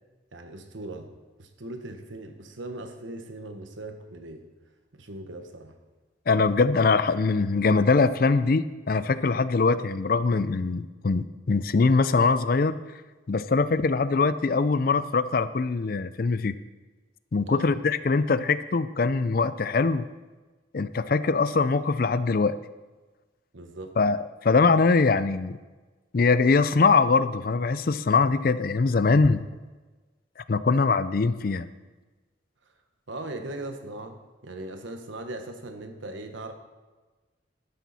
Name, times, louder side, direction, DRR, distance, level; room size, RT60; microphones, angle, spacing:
voice 1, 0.3-1.1 1.4-4.5 5.0-5.8 17.4-17.8 23.5-23.9 33.1-36.5, right 2 dB, 80° right, 6 dB, 1.3 m, -39 dB
voice 2, 6.3-12.8 13.3-16.6 17.3-20.1 20.7-22.6 24.0-24.2 24.4-25.6 26.1-29.4 30.5-31.7, left 4 dB, 50° left, 14 dB, 0.4 m, -22 dB
12.5 x 10.5 x 4.2 m, 1.3 s
head